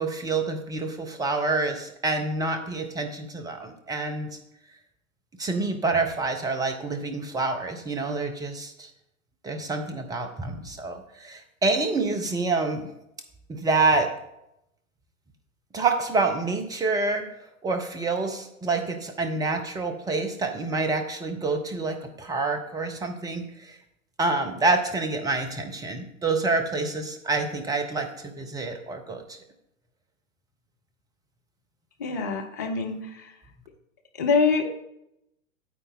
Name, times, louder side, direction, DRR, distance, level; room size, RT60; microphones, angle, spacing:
voice 1, 0.0-4.3 5.4-8.9 9.4-12.9 13.5-14.1 15.7-17.3 17.6-23.8 24.2-29.4, right 3 dB, 10° right, 6 dB, 0.8 m, -27 dB
voice 2, 32.0-33.3 34.1-34.7, left 4 dB, 15° left, 3 dB, 0.3 m, -25 dB
9.3 x 7.9 x 4.0 m, 0.84 s
figure-of-eight pair, 110°, 43 cm